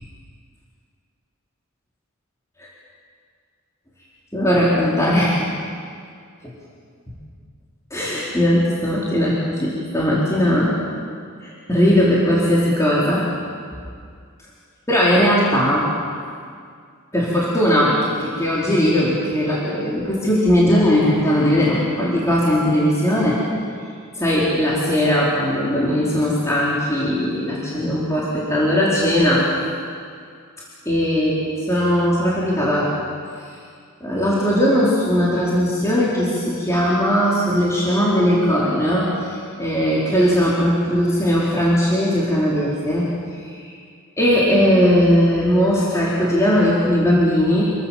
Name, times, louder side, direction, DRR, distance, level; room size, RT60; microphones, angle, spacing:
voice 1, 4.3-5.5 6.4-6.5 7.9-10.7 11.4-13.2 14.9-15.9 17.1-23.4 24.1-29.5 30.8-32.9 33.4-33.5 34.0-43.1 43.4-43.6 44.2-47.6, equal, 15° left, -7 dB, 4.7 m, -19 dB
28.5 x 23.0 x 7.6 m, 2.2 s
head